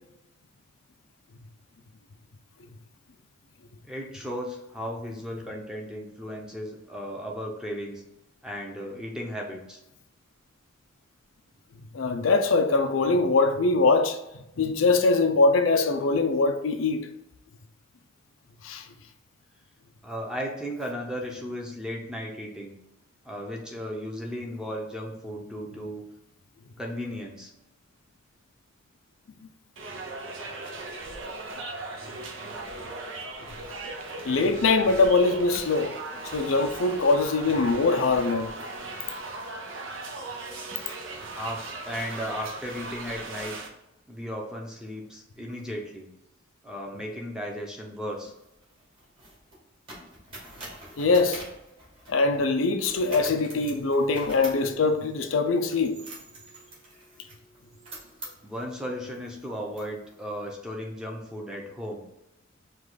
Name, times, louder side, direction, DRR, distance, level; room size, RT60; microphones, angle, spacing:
voice 1, 3.8-8.0 8.4-9.8 20.0-22.7 23.2-26.0 26.8-27.5 41.3-43.5 44.1-46.1 46.6-48.3 58.4-62.0, equal, 5° right, 0.7 m, -35 dB
voice 2, 11.9-17.1 18.6-18.9 34.2-35.9 36.2-38.5 51.0-51.4 52.1-56.0, left 3 dB, 85° left, 0.5 m, -23 dB
sound 1, 29.8-43.7, right 2 dB, 75° right, 0.7 m, -38 dB
sound 2, 48.1-52.4 52.8-58.7 59.2-59.4 59.7-60.4, right 1 dB, 25° right, 1.5 m, -45 dB
4.9 x 2.4 x 3.9 m
head